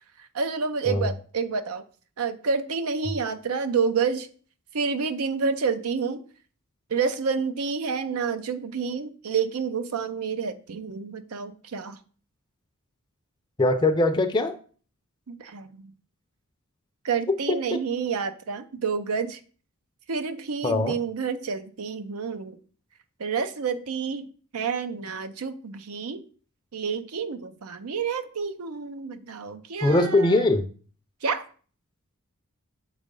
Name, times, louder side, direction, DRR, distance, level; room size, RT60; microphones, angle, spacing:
voice 1, 0.2-1.8 2.2-4.3 4.7-6.2 6.9-12.0 15.3-15.9 17.0-19.4 20.1-22.6 23.2-26.2 26.7-30.5 31.2-31.5, right 5 dB, 75° right, 11 dB, 0.6 m, -29 dB
voice 2, 13.6-14.5 17.5-17.8 20.6-21.0 29.8-30.7, left 2 dB, 20° left, 4 dB, 0.5 m, -21 dB
7.3 x 3.3 x 5.3 m, 0.42 s
head